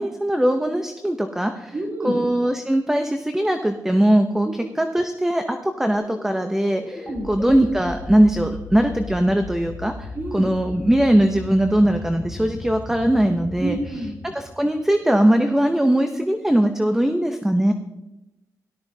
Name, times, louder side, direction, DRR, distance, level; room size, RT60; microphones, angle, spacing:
voice 1, 0.0-1.7 2.0-4.5 4.8-10.1 10.3-13.8 14.3-17.7, right 1 dB, 5° right, 6 dB, 0.6 m, -20 dB
voice 2, 1.7-2.2 4.4-4.5 7.0-7.3 10.1-10.5 13.6-14.1, right 1 dB, 35° right, -2 dB, 3.0 m, -28 dB
sound 1, 5.9-15.3, left 2 dB, 20° left, 1.5 m, -37 dB
17.5 x 12.5 x 2.7 m, 0.98 s
wide cardioid pair, 125°, 6 cm